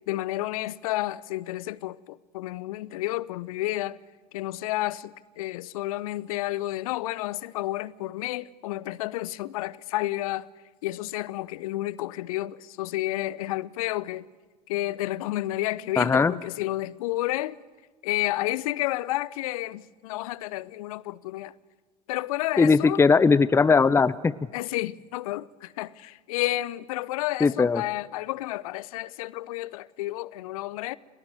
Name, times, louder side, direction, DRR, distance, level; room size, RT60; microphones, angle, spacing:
voice 1, 0.1-4.0 4.3-10.5 10.8-14.3 14.7-17.6 18.0-21.5 22.1-23.0 24.5-31.0, left 16 dB, 65° left, 0.8 m, -31 dB
voice 2, 16.0-16.3 22.6-24.3 27.4-27.8, left 4 dB, 15° left, 0.7 m, -19 dB
30.0 x 18.5 x 7.9 m
figure-of-eight pair, 70°, 20 cm